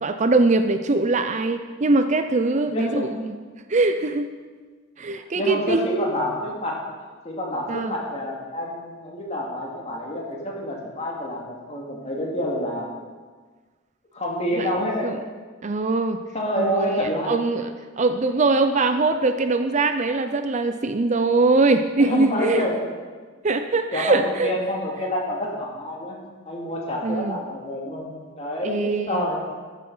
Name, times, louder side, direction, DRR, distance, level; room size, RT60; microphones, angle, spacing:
voice 1, 0.0-3.4 3.7-4.3 5.0-5.8 7.7-7.9 14.5-14.7 15.0-15.2 15.6-16.2 16.6-17.7 18.0-22.6 23.4-24.5 27.0-27.4 28.6-29.2, right 3 dB, 35° right, 8 dB, 0.5 m, -22 dB
voice 2, 2.6-3.1 5.1-6.8 7.2-13.0 14.1-15.2 16.3-17.6 22.0-22.7 23.9-26.2 26.5-29.4, left 1 dB, 30° left, -2 dB, 2.7 m, -28 dB
14.0 x 8.2 x 5.6 m, 1.4 s
head